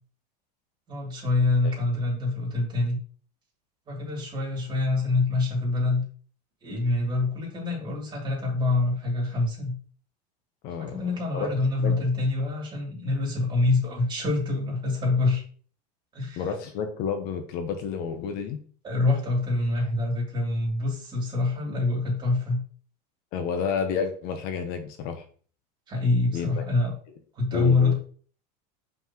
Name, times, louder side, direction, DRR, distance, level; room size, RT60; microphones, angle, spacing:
voice 1, 0.9-3.0 3.9-6.0 6.6-9.8 10.8-15.4 16.1-16.5 18.8-22.6 25.9-26.9 27.3-27.9, left 3 dB, 20° right, -3 dB, 3.3 m, -25 dB
voice 2, 10.6-11.5 11.8-12.0 16.4-18.6 23.3-25.2 26.3-26.5 27.5-27.9, left 6 dB, 45° left, 6 dB, 1.1 m, -30 dB
7.1 x 5.9 x 3.1 m, 0.43 s
supercardioid pair, 145°, 21 cm